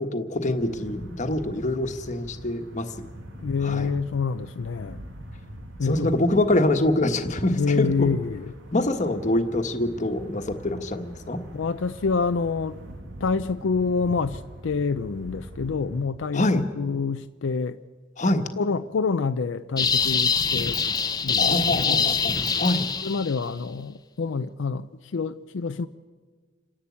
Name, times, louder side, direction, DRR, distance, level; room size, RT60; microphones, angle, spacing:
voice 1, 0.0-2.9 3.6-4.0 5.8-8.1 8.7-11.4 16.3-16.6 18.2-18.5 21.4-22.9, left 1 dB, 40° left, 7 dB, 1.4 m, -25 dB
sound 1, 0.5-16.1, equal, 75° right, 2.1 m, -43 dB
voice 2, 3.4-5.0 5.8-6.2 7.6-8.5 11.5-12.8 13.2-17.8 18.3-20.8 21.2-22.1 23.0-24.9 25.1-25.9, left 4 dB, 75° left, 9 dB, 0.5 m, -27 dB
sound 2, 19.8-23.4, left 5 dB, 20° left, 0.8 m, -24 dB
27.5 x 11.5 x 8.5 m, 1.5 s
head